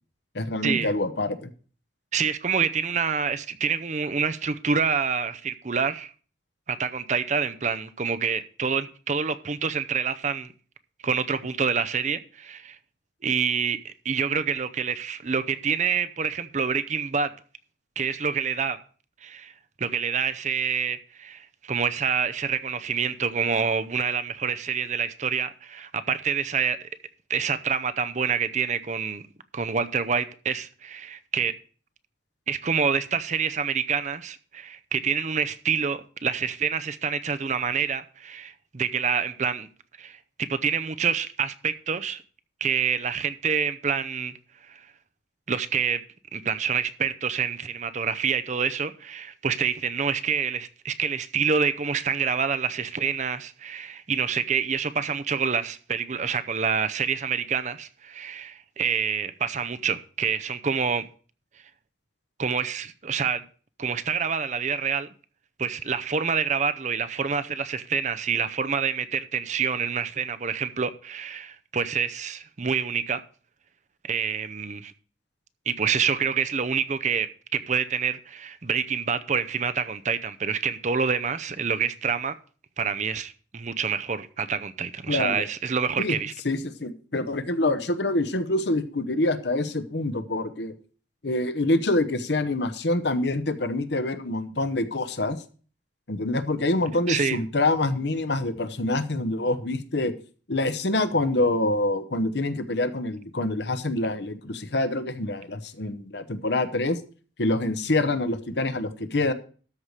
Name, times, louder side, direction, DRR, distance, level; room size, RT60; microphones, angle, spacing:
voice 1, 0.3-1.5 85.1-85.4 86.0-86.2 86.4-90.7 91.2-95.4 96.1-100.1 100.5-107.0 107.4-109.3, left 2 dB, 65° left, 1.0 m, -26 dB
voice 2, 2.1-6.1 6.7-10.5 11.0-12.8 13.2-17.3 18.0-18.8 19.2-19.5 19.8-26.9 27.3-29.2 29.5-31.6 32.5-39.7 40.0-42.2 42.6-44.3 44.7-44.9 45.5-46.0 46.3-61.1 62.4-63.4 63.8-65.1 65.6-73.2 74.0-74.9 75.7-82.4 82.8-86.3 97.1-97.4, right 6 dB, 40° right, 0.6 m, -27 dB
13.0 x 4.8 x 6.5 m
head